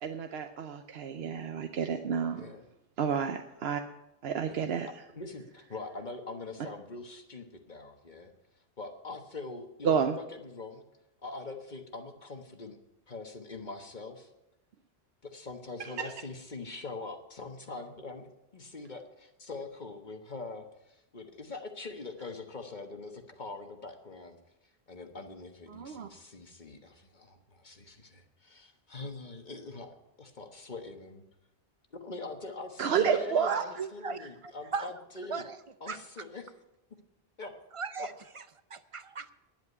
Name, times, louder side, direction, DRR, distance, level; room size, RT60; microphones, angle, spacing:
voice 1, 0.0-2.5 3.0-3.8 4.2-4.9 9.8-10.2 16.0-16.1 25.7-26.1 32.8-33.6, right 7 dB, 70° right, 6 dB, 0.9 m, -30 dB
voice 2, 2.3-2.7 4.5-4.6 5.1-8.3 8.8-10.8 11.2-12.8 13.1-14.3 15.2-18.3 18.5-24.4 24.9-31.2 32.0-35.4 35.8-36.5 37.4-37.5 38.0-38.1, left 3 dB, 45° left, 5 dB, 1.4 m, -43 dB
voice 3, 33.5-34.2 34.7-34.9 35.3-35.6 35.9-36.2 37.7-39.3, right 5 dB, 40° right, 13 dB, 0.5 m, -38 dB
10.5 x 8.1 x 9.4 m, 0.90 s
omnidirectional pair, 1.1 m